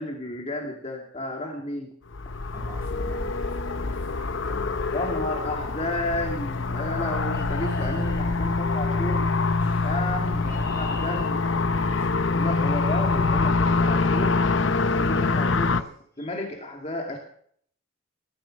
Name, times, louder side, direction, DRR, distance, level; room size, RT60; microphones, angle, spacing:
voice 1, 0.0-1.9 4.9-9.3 9.8-10.4 10.8-11.4 12.3-14.4 14.8-15.9 16.2-17.2, left 1 dB, 30° left, 1 dB, 2.2 m, -32 dB
sound 1, 2.1-15.8, left 3 dB, 65° left, 0.8 m, -25 dB
voice 2, 2.5-5.2 7.6-8.4 9.6-10.9 11.9-12.4, equal, 10° right, -2 dB, 7.8 m, -44 dB
Chirp tweet, 7.3-9.0 10.0-13.1 14.2-14.5 15.1-15.4 15.6-15.8 16.2-16.5, left 2 dB, 15° left, 7.5 m, -49 dB
19.0 x 11.5 x 6.5 m, 0.63 s
head